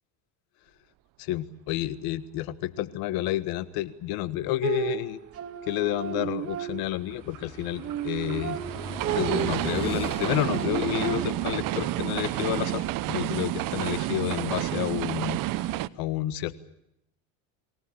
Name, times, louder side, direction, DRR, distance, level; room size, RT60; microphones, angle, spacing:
voice 1, 1.2-5.2 5.6-8.6 9.0-16.6, left 14 dB, 70° left, 15 dB, 1.6 m, -30 dB
sound 1, 4.6-7.2 7.6-11.5, right 11 dB, 40° right, 2.6 m, -34 dB
sound 2, 6.6-15.9, right 16 dB, 60° right, 1.0 m, -30 dB
Motorcycle / Engine, 6.7-13.7, left 2 dB, 15° left, 3.7 m, -42 dB
24.5 x 18.0 x 8.7 m, 0.81 s
supercardioid pair, 105°, 38 cm